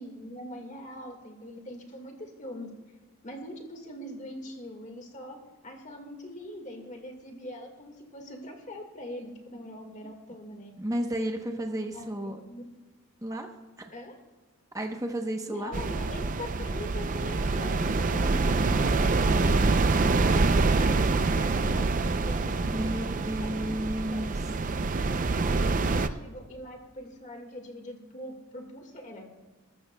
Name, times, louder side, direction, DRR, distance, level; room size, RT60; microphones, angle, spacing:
voice 1, 0.0-2.7 3.2-5.4 5.6-10.7 11.9-12.1 12.5-12.6 13.9-14.2 15.5-21.9 22.3-23.8 24.1-24.3 25.0-29.3, left 1 dB, 35° left, 3 dB, 1.7 m, -42 dB
voice 2, 10.8-12.4 13.2-13.5 14.7-15.7 22.6-24.3, right 1 dB, 15° right, 4 dB, 0.8 m, -32 dB
sound 1, 15.7-26.1, right 3 dB, 35° right, 0.4 m, -26 dB
19.0 x 14.0 x 2.2 m, 1.3 s
head